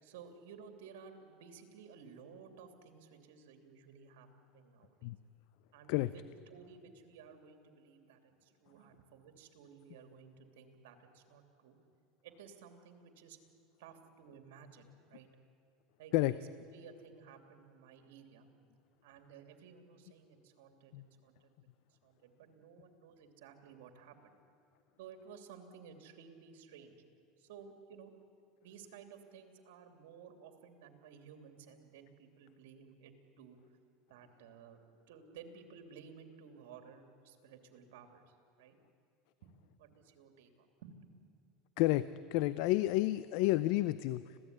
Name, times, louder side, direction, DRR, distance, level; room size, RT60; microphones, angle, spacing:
voice 1, 0.0-5.1 5.7-11.8 12.2-13.4 13.8-15.3 16.0-16.5 16.7-18.5 19.0-21.5 22.0-24.4 25.0-27.0 27.4-28.1 28.6-33.8 34.1-38.7 39.4-39.5 39.8-41.3, right 6 dB, 80° right, 6 dB, 2.9 m, -55 dB
voice 2, 41.8-44.4, left 17 dB, 65° left, 16 dB, 0.6 m, -30 dB
26.0 x 17.0 x 9.7 m, 2.6 s
supercardioid pair, 135°, 0 cm